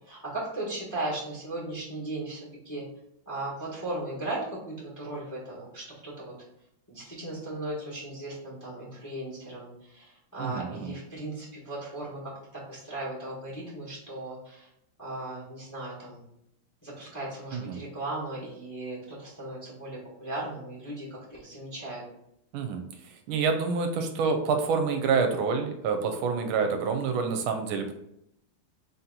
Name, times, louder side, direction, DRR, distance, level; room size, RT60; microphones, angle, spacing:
voice 1, 0.1-2.8 3.3-6.3 6.9-14.7 15.0-16.2 16.8-22.0, right 2 dB, 10° left, -6 dB, 0.9 m, -37 dB
voice 2, 10.4-10.9 17.5-17.8 22.5-22.8 23.3-28.0, right 5 dB, 80° right, 5 dB, 1.4 m, -27 dB
3.8 x 2.8 x 3.8 m, 0.77 s
omnidirectional pair, 2.4 m